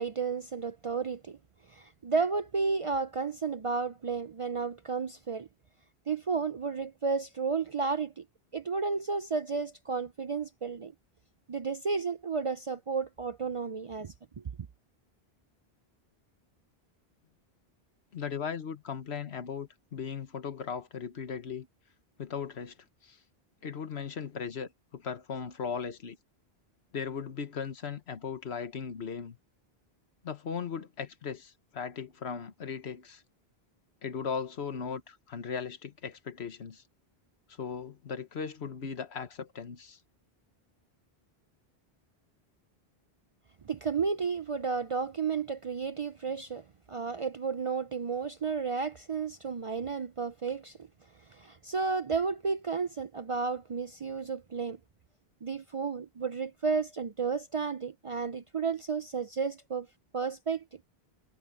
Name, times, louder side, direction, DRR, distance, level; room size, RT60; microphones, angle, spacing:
voice 1, 0.0-1.4 1.7-5.5 6.1-8.3 8.5-10.9 11.5-14.4 43.6-50.8 51.3-54.8 55.4-59.9 60.1-60.8, right 5 dB, 45° right, 0.4 m, -32 dB
voice 2, 18.1-21.7 22.2-22.7 23.0-23.2 23.6-26.2 26.9-29.4 30.2-33.2 34.0-36.8 37.6-40.0, left 6 dB, 85° left, 1.4 m, -37 dB
omnidirectional pair, 1.1 m